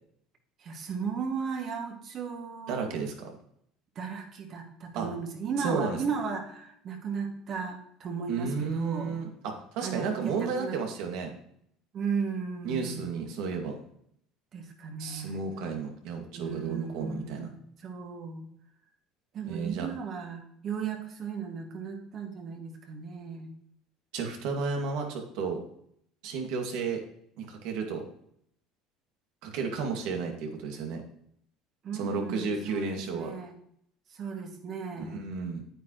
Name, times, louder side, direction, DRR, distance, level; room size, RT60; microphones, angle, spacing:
voice 1, 0.6-2.9 4.0-9.2 9.8-10.8 11.9-13.1 14.5-15.4 16.3-17.5 17.8-18.4 19.3-23.5 31.8-33.5 34.1-35.2, right 5 dB, 45° right, 3 dB, 2.3 m, -36 dB
voice 2, 2.7-3.3 4.9-5.1 5.6-6.0 8.3-11.3 12.6-13.8 15.0-17.5 19.5-19.9 24.1-25.6 26.2-27.0 27.4-28.0 29.4-31.0 31.9-33.3 35.0-35.6, right 5 dB, 70° right, 3 dB, 2.2 m, -32 dB
9.2 x 8.9 x 3.2 m, 0.69 s
supercardioid pair, 95°, 0 cm